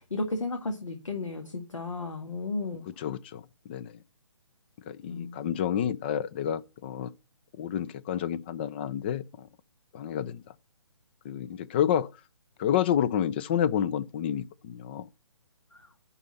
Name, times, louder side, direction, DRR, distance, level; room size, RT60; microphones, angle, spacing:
voice 1, 0.0-2.8 5.0-5.4 15.7-15.9, left 3 dB, 75° left, 2.0 m, -34 dB
voice 2, 2.9-4.0 4.9-7.1 7.6-9.5 9.9-10.4 11.2-12.1 12.6-15.1, left 9 dB, 20° left, 0.4 m, -29 dB
11.0 x 4.1 x 6.8 m
figure-of-eight pair, 140°, 16 cm